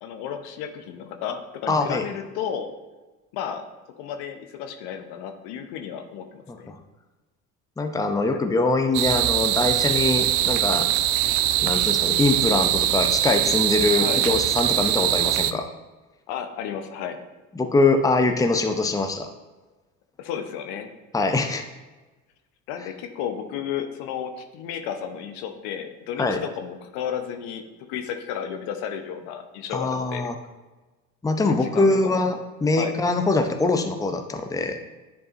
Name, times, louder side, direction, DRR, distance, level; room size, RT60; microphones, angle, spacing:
voice 1, 0.0-2.7 3.3-3.6 4.0-6.7 8.3-8.4 14.0-14.3 16.3-17.2 20.2-20.9 22.7-27.6 27.9-30.3 31.5-32.2 32.7-33.0, left 8 dB, 70° left, 6 dB, 0.9 m, -33 dB
voice 2, 1.7-2.1 6.5-6.7 7.8-10.9 11.6-15.6 17.5-19.3 21.1-21.6 26.2-26.4 29.7-30.3 31.2-34.8, left 3 dB, 10° left, 6 dB, 0.6 m, -23 dB
sound 1, 8.9-15.5, right 13 dB, 55° right, 0.5 m, -22 dB
10.0 x 4.7 x 2.6 m, 1.2 s
hypercardioid pair, 65°, 41 cm